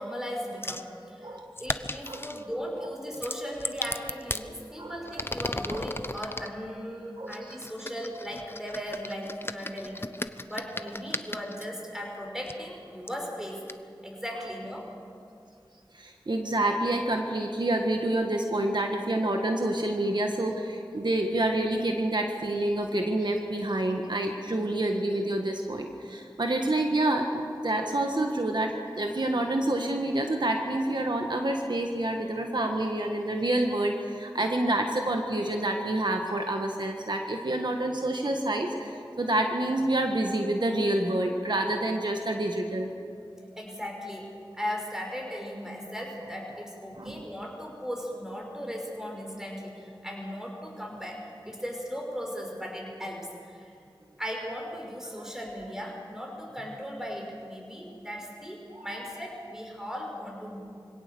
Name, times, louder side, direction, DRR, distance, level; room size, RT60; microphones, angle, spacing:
voice 1, 0.0-10.0 10.4-13.6 14.0-14.9 43.6-53.7 54.2-60.6, equal, 5° right, 0 dB, 5.7 m, -37 dB
sound 1, 0.6-0.9 1.6-2.4 3.1-4.5 5.0-6.5 7.3-11.7 12.5-12.6 13.1-13.2 13.7-13.8, left 2 dB, 30° left, 0.8 m, -36 dB
voice 2, 1.2-1.5 2.1-2.3 4.8-4.9 5.7-5.8 7.2-7.6 15.9-42.9 47.0-47.2 55.2-55.3 58.7-59.0, right 1 dB, 60° right, 3 dB, 1.5 m, -28 dB
24.0 x 17.0 x 6.9 m, 2.5 s
wide cardioid pair, 45°, 8 cm